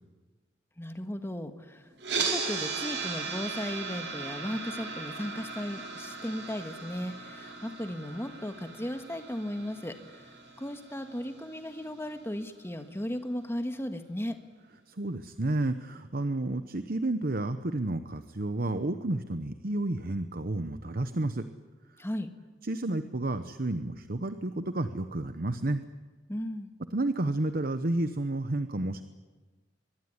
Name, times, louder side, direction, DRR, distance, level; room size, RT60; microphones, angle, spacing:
voice 1, 0.8-10.3 10.6-14.4 22.0-22.3 26.3-26.7, equal, 15° left, 7 dB, 1.8 m, -36 dB
sound 1, 2.0-12.1, right 4 dB, 75° right, 5.7 m, -37 dB
voice 2, 14.9-21.5 22.6-25.8 26.9-29.0, right 2 dB, 55° right, 10 dB, 1.0 m, -31 dB
24.0 x 21.5 x 9.8 m, 1.3 s
head